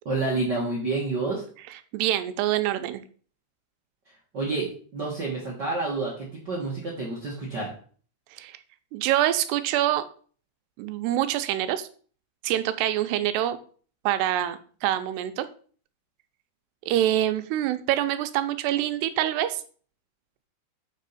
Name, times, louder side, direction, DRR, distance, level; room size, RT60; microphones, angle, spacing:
voice 1, 0.0-1.4 4.3-7.7, right 3 dB, 60° right, -4 dB, 1.1 m, -29 dB
voice 2, 1.7-3.0 8.3-8.6 8.9-10.1 10.8-11.9 12.4-13.6 14.1-15.5 16.9-19.6, right 12 dB, 90° right, 10 dB, 2.8 m, -25 dB
7.4 x 6.3 x 4.1 m, 0.44 s
omnidirectional pair, 4.8 m